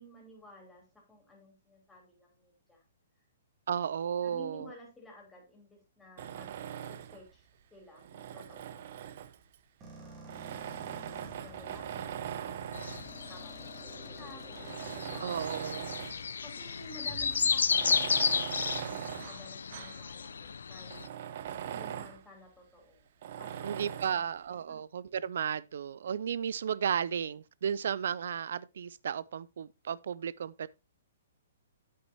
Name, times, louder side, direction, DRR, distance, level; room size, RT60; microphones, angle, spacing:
voice 1, 0.0-2.8 4.2-9.1 10.0-10.6 10.8-12.4 12.9-13.0 13.3-15.5 16.4-21.0 21.6-23.0 23.4-24.4 24.7-24.8, left 1 dB, 5° left, 3.3 m, -54 dB
voice 2, 3.7-4.7 15.2-16.0 23.6-30.7, right 8 dB, 70° right, 0.3 m, -34 dB
Tools, 6.2-7.3 7.9-9.6 10.3-13.2 13.9-14.0 14.5-16.3 16.6-16.7 17.6-20.1 20.4-20.5 20.9-22.2 23.2-24.2, right 9 dB, 50° right, 0.7 m, -41 dB
sound 1, 9.8-17.8, right 3 dB, 25° right, 2.8 m, -51 dB
sound 2, 12.7-21.1, left 6 dB, 85° left, 0.5 m, -33 dB
8.9 x 8.4 x 2.8 m
hypercardioid pair, 150°, 0 cm